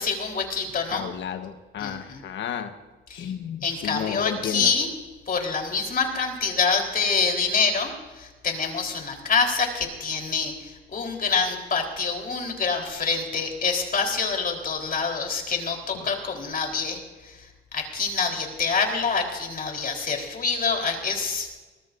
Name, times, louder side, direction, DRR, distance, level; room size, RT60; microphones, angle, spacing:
voice 1, 0.0-1.0 1.8-2.2 3.1-3.3 3.6-4.9 5.3-17.4 17.7-21.5, left 5 dB, 45° left, 2 dB, 4.0 m, -26 dB
voice 2, 0.9-2.7 3.1-4.7 15.9-16.1, left 8 dB, 70° left, 8 dB, 1.3 m, -32 dB
23.5 x 19.0 x 2.6 m, 1.2 s
cardioid pair, 90°, 20 cm